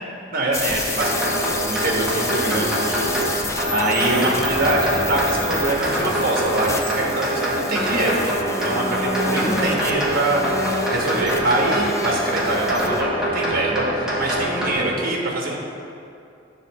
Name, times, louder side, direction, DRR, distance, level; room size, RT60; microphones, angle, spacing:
voice 1, 0.3-3.1 3.5-15.6, right 1 dB, 50° right, -2 dB, 1.3 m, -24 dB
sound 1, 0.5-13.0, left 2 dB, 15° left, 0.5 m, -30 dB
sound 2, 1.0-14.7, right 1 dB, 5° right, 1.4 m, -25 dB
8.3 x 3.8 x 6.1 m, 2.5 s
head